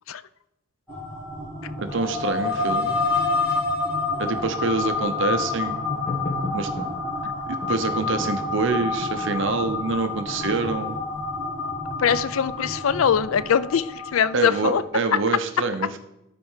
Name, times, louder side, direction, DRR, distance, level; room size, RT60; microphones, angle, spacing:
sound 1, 0.9-14.8, left 3 dB, 10° right, 3.0 m, -28 dB
voice 1, 1.8-2.9 4.2-5.8 6.5-6.7 7.5-11.0 14.3-16.0, right 3 dB, 60° right, 8 dB, 0.8 m, -26 dB
sound 2, 5.9-6.9 7.6-7.8 8.2-10.3, left 1 dB, 40° left, 1.1 m, -34 dB
voice 2, 12.0-14.8 15.1-15.2, left 7 dB, 70° left, 17 dB, 0.4 m, -22 dB
13.5 x 4.5 x 5.6 m, 0.89 s
head